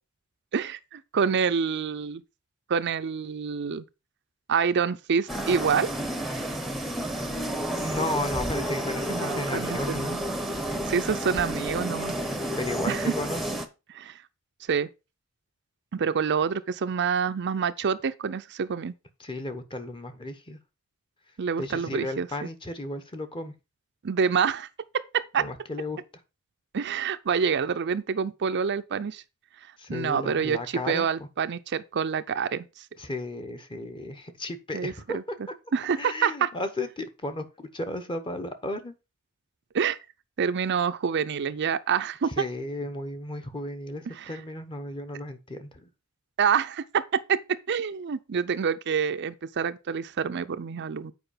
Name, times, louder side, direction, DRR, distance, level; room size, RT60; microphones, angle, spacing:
voice 1, 0.5-2.2 2.7-3.8 4.5-5.9 9.1-10.2 10.8-12.2 12.9-13.1 13.9-14.2 14.7-14.9 15.9-18.9 21.4-22.5 24.0-24.7 24.9-25.5 26.7-29.2 29.9-32.9 34.7-35.2 35.7-36.5 39.7-40.0 40.4-42.3 44.1-44.4 46.4-47.4 47.7-51.1, right 6 dB, 50° right, 0.5 m, -27 dB
sound 1, 5.3-13.7, right 1 dB, ahead, 0.8 m, -31 dB
voice 2, 7.8-10.1 12.5-13.4 19.2-20.6 21.6-23.5 25.4-26.0 29.8-31.1 33.0-35.2 36.0-38.9 42.4-45.9, left 1 dB, 20° left, 1.0 m, -34 dB
8.0 x 4.8 x 5.0 m
head